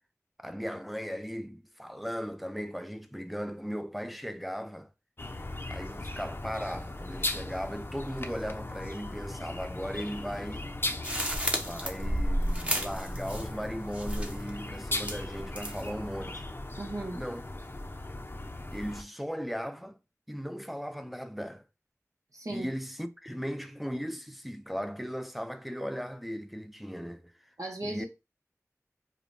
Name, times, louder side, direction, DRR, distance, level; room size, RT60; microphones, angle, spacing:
voice 1, 0.4-4.9 5.7-10.7 11.6-16.5 17.1-17.4 18.7-20.0 20.3-21.6 22.5-27.5 27.8-28.1, equal, ahead, 0.5 m, -37 dB
sound 1, 5.2-19.0, left 2 dB, 40° left, 0.6 m, -38 dB
sound 2, 11.0-13.7 13.9-14.5 15.0-15.9, equal, 20° right, 0.8 m, -31 dB
voice 2, 16.8-17.2 22.3-22.7 27.6-28.1, right 1 dB, 80° right, 0.9 m, -36 dB
5.1 x 2.2 x 2.6 m
wide cardioid pair, 45°, 6 cm